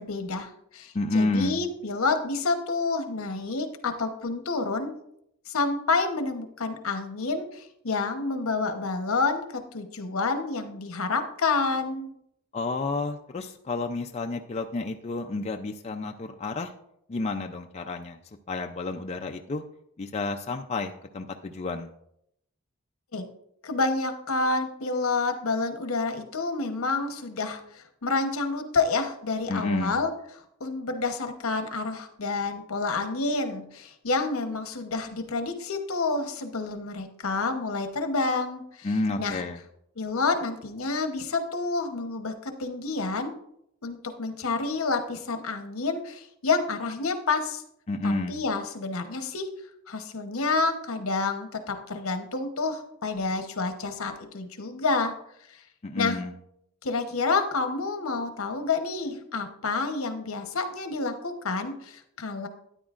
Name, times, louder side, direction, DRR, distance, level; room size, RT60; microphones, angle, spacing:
voice 1, 0.0-4.9 5.5-12.1 23.1-23.2 23.6-30.1 30.6-38.9 39.2-39.4 40.0-43.3 43.8-47.6 48.0-49.5 49.9-55.1 55.5-55.6 56.0-56.2 56.8-62.5, left 3 dB, 75° left, 7 dB, 1.0 m, -29 dB
voice 2, 0.9-1.6 12.5-16.7 17.1-18.2 18.5-19.6 20.0-21.9 29.5-30.0 38.8-39.6 47.9-48.4 55.8-56.3, left 3 dB, 30° left, 4 dB, 0.4 m, -30 dB
12.5 x 9.5 x 2.5 m, 0.75 s
head